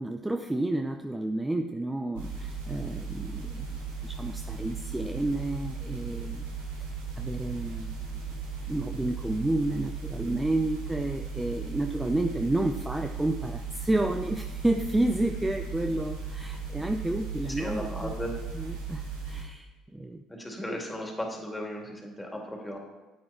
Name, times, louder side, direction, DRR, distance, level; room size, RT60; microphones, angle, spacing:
voice 1, 0.0-3.8 4.0-6.4 7.2-8.2 8.7-18.1 18.5-20.2 20.7-20.8, right 2 dB, 15° right, 6 dB, 0.6 m, -30 dB
sound 1, 2.1-19.4, right 5 dB, 85° right, 2.6 m, -37 dB
voice 2, 17.6-18.3 20.3-22.8, left 1 dB, 10° left, 0 dB, 3.0 m, -36 dB
10.5 x 8.6 x 4.3 m, 1.2 s
hypercardioid pair, 60°, 0 cm